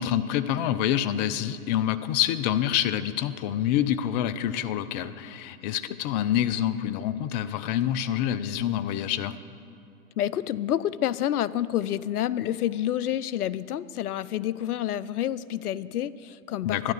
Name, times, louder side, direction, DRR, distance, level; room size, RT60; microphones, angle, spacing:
voice 1, 0.0-9.3 16.6-16.9, left 11 dB, 30° left, 14 dB, 0.4 m, -27 dB
voice 2, 10.2-16.9, left 11 dB, 85° left, 18 dB, 0.5 m, -28 dB
12.0 x 10.5 x 6.6 m, 2.8 s
hypercardioid pair, 110°, 44 cm